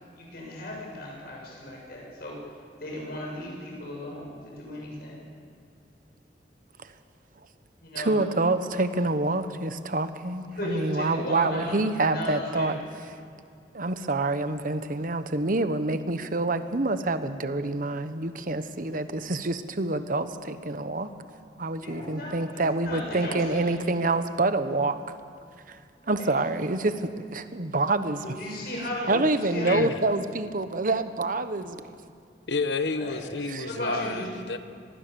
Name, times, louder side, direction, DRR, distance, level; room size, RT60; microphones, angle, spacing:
voice 1, 0.2-2.4 2.8-5.2 7.8-8.1 10.6-11.8 12.1-12.7 21.8-23.8 26.0-26.3 28.4-29.1 29.4-29.9 32.9-33.2 33.6-34.3, left 1 dB, 60° left, -2 dB, 7.3 m, -35 dB
voice 2, 7.9-12.7 13.1-13.2 13.7-21.1 21.6-25.0 25.7-25.8 26.1-28.2 29.1-31.9 33.5-33.7, right 2 dB, 50° right, 10 dB, 1.1 m, -27 dB
voice 3, 32.5-34.6, left 3 dB, 80° left, 10 dB, 1.2 m, -30 dB
25.5 x 19.5 x 7.1 m, 2.4 s
head